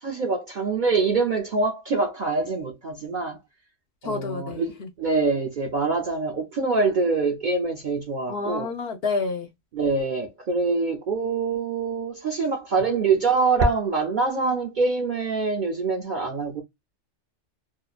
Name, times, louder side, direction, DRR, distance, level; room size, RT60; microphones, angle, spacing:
voice 1, 0.0-3.4 4.0-8.7 9.7-16.6, right 4 dB, 60° right, 0.5 m, -25 dB
voice 2, 4.0-4.9 8.3-9.5, left 4 dB, 65° left, 0.7 m, -29 dB
2.8 x 2.1 x 2.3 m
omnidirectional pair, 1.3 m